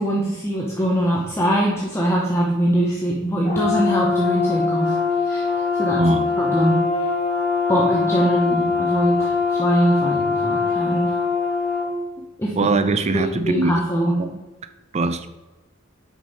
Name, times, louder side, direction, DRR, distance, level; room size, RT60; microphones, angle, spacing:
voice 1, 0.0-5.0 5.2-5.5 5.8-6.0 6.4-6.8 7.7-11.1 12.4-12.7 13.1-14.2, right 1 dB, 15° left, -3 dB, 0.8 m, -22 dB
Brass instrument, 3.5-11.9, left 5 dB, 30° left, 1.9 m, -22 dB
voice 2, 6.0-6.3 12.6-13.8 14.2-14.3 14.9-15.3, right 2 dB, 30° right, 11 dB, 0.4 m, -21 dB
6.3 x 5.3 x 4.0 m, 1.1 s
head